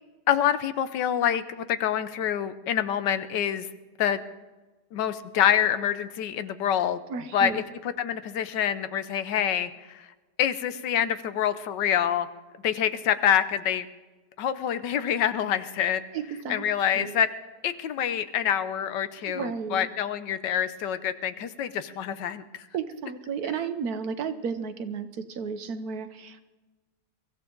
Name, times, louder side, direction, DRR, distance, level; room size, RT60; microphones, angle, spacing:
voice 1, 0.3-3.7 4.0-4.2 4.9-7.0 7.3-10.1 10.4-12.3 12.6-13.9 14.4-16.0 16.5-17.3 17.6-22.4, left 9 dB, 75° left, 12 dB, 1.4 m, -26 dB
voice 2, 7.1-7.6 16.1-16.6 16.9-17.1 19.2-19.9 22.7-26.4, right 6 dB, 60° right, 10 dB, 1.3 m, -33 dB
23.5 x 14.5 x 3.8 m, 1.2 s
omnidirectional pair, 1.9 m